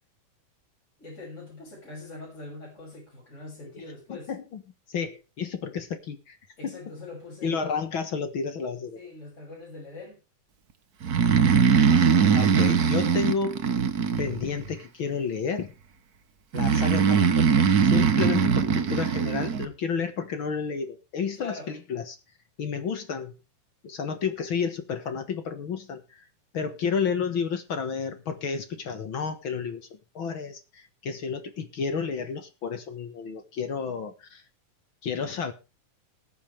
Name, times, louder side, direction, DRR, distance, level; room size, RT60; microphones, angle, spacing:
voice 1, 1.0-4.3 6.6-7.6 9.0-10.2 11.3-11.6 18.2-19.0 21.3-21.7, left 3 dB, 20° left, 7.0 m, -43 dB
voice 2, 4.1-4.6 4.9-6.4 6.6-6.8 7.4-9.0 12.3-13.6 14.2-15.7 16.5-18.6 18.9-22.2 22.6-23.3 23.8-26.2 26.5-34.4 35.0-35.5, left 6 dB, 50° left, 1.8 m, -31 dB
Breathing, 11.0-14.7 16.5-19.6, right 7 dB, 70° right, 0.8 m, -21 dB
20.5 x 8.9 x 3.4 m
omnidirectional pair, 3.6 m